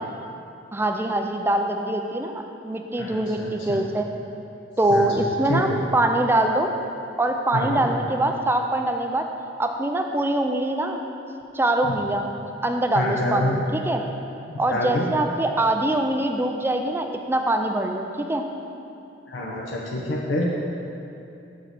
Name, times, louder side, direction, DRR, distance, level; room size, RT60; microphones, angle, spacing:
voice 1, 0.7-4.1 4.8-5.7 5.9-6.7 7.2-9.3 9.6-11.0 11.5-12.2 12.6-14.0 14.6-18.4, right 1 dB, 10° right, 4 dB, 0.4 m, -23 dB
voice 2, 3.0-3.8 4.9-5.8 7.5-7.8 11.8-11.9 12.9-13.6 14.5-15.1 19.3-20.5, left 1 dB, 75° left, -3 dB, 0.8 m, -27 dB
6.6 x 4.9 x 6.0 m, 2.7 s
head